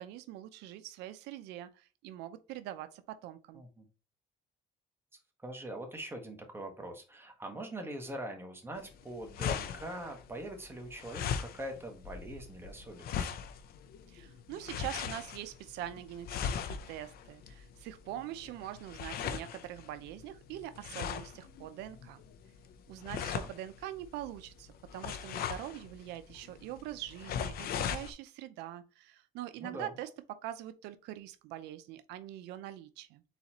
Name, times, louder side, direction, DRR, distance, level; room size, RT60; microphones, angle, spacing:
voice 1, 0.0-3.6 14.1-22.2 22.9-33.2, right 13 dB, 90° right, 0.6 m, -43 dB
voice 2, 3.5-3.8 5.4-13.3 23.2-23.5 29.6-29.9, right 1 dB, 15° right, 1.4 m, -43 dB
sound 1, 8.8-28.1, left 8 dB, 65° left, 0.6 m, -40 dB
4.0 x 4.0 x 2.9 m
cardioid pair, 110°, 17 cm